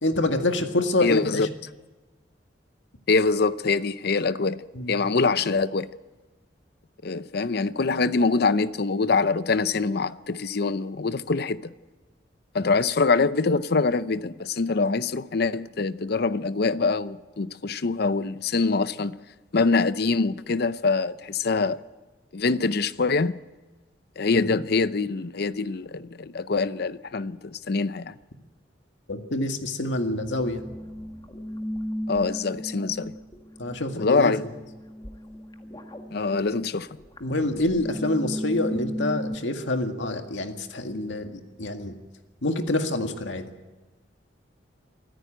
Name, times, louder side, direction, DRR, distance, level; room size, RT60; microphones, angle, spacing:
voice 1, 0.0-1.5 4.8-4.9 24.3-24.5 29.1-30.6 33.6-34.3 37.2-41.9 42.4-43.5, left 2 dB, 85° left, 2.0 m, -27 dB
voice 2, 1.0-1.5 3.1-4.6 4.9-5.9 7.0-11.7 12.5-19.2 19.5-21.8 22.3-23.4 24.2-28.1 32.1-33.1 34.0-34.4 36.1-36.9, left 4 dB, 60° left, 0.6 m, -24 dB
sound 1, 30.2-39.4, equal, 25° left, 1.7 m, -36 dB
24.5 x 14.0 x 9.1 m
head